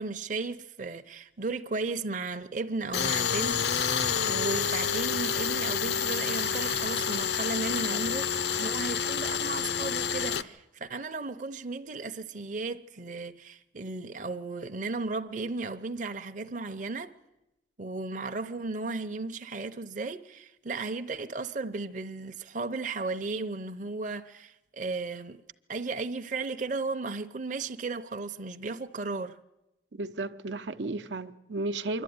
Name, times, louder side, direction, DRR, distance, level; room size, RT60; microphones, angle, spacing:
voice 1, 0.0-17.1 17.8-25.4 25.7-29.4, right 3 dB, 45° right, 0.7 m, -35 dB
Tools, 2.9-10.4, left 7 dB, 75° left, 0.8 m, -28 dB
voice 2, 29.9-32.0, right 2 dB, 90° right, 0.9 m, -34 dB
26.0 x 12.0 x 9.5 m
head